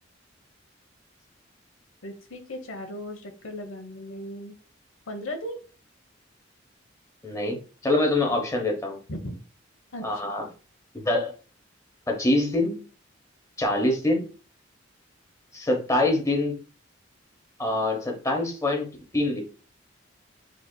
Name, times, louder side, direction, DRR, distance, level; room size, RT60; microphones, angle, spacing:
voice 1, 2.0-4.6 5.1-5.6 9.1-9.4 9.9-10.1, left 1 dB, 85° left, 6 dB, 0.9 m, -36 dB
voice 2, 7.2-9.0 10.0-10.5 10.9-11.3 12.1-12.8 13.6-14.2 15.5-16.6 17.6-18.9 19.1-19.4, left 2 dB, 15° left, 2 dB, 1.0 m, -25 dB
7.7 x 2.8 x 2.2 m, 0.36 s
head